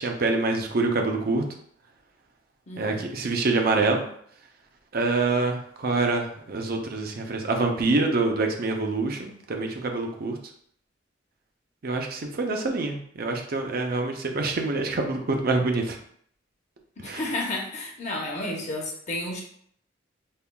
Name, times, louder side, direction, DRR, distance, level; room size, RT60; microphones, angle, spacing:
voice 1, 0.0-1.4 2.8-4.0 4.9-10.4 11.8-16.0 17.0-17.2, right 3 dB, 55° right, 3 dB, 0.6 m, -26 dB
voice 2, 2.7-3.1 17.0-19.4, left 2 dB, 40° left, -1 dB, 0.8 m, -32 dB
5.4 x 2.3 x 2.3 m, 0.63 s
head